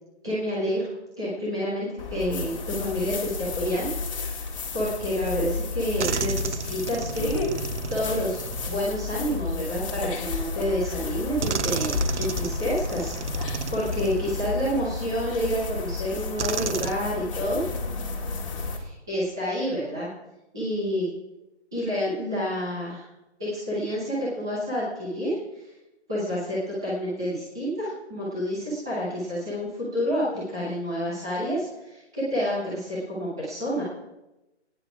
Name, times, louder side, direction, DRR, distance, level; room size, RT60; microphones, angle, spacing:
voice 1, 0.2-0.9 1.2-3.9 4.3-17.6 18.6-20.1 20.5-21.1 21.7-23.1 23.4-25.7 26.1-33.8, equal, 5° right, -10 dB, 0.7 m, -29 dB
sound 1, 2.0-18.8, left 3 dB, 30° left, 1.9 m, -32 dB
sound 2, 5.3-5.4 6.0-9.6 10.6-10.7 11.4-14.7 15.4-15.5 16.4-16.9, right 6 dB, 80° right, 0.9 m, -33 dB
17.5 x 9.9 x 4.8 m, 0.98 s
hypercardioid pair, 175°, 34 cm